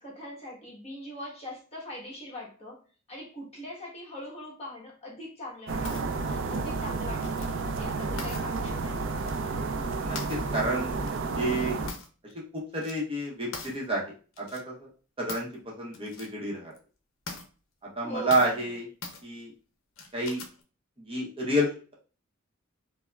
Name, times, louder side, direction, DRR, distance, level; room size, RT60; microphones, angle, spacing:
voice 1, 0.0-2.8 3.1-9.0 18.0-18.8, left 1 dB, 30° left, 1.2 m, -42 dB
sound 1, 5.7-11.9, right 3 dB, 65° right, 0.4 m, -31 dB
sound 2, 5.8-6.1 7.2-7.6 8.2-8.4 9.2-9.5 10.1-10.5 11.1-11.2 11.9-12.3 12.6-12.9 13.5-13.8 14.3-14.6 15.3-15.5 15.9-16.3 16.7-16.8 17.3-17.5 18.3-18.6 19.0-19.2 20.0-20.6, left 4 dB, 70° left, 0.6 m, -41 dB
voice 2, 10.0-11.0 11.4-11.8 12.5-14.0 14.4-14.9 15.2-15.5 15.8-16.7 18.0-18.9 19.2-19.5 20.1-20.4 21.1-21.9, right 1 dB, 25° right, 0.8 m, -29 dB
4.5 x 2.0 x 2.3 m
head